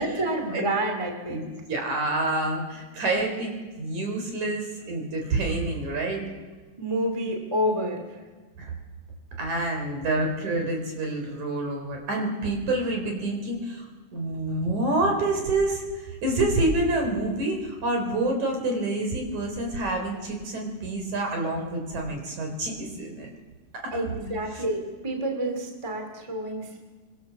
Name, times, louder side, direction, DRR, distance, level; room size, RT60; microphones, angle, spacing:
voice 1, 0.0-1.5 6.8-8.2 23.9-26.8, right 1 dB, 10° right, 3 dB, 2.3 m, -28 dB
voice 2, 1.3-6.2 8.6-8.7 9.4-13.9 14.1-23.3 23.7-24.0 24.5-24.6, right 2 dB, 50° right, 2 dB, 5.1 m, -27 dB
24.5 x 23.0 x 7.0 m, 1.3 s
omnidirectional pair, 4.4 m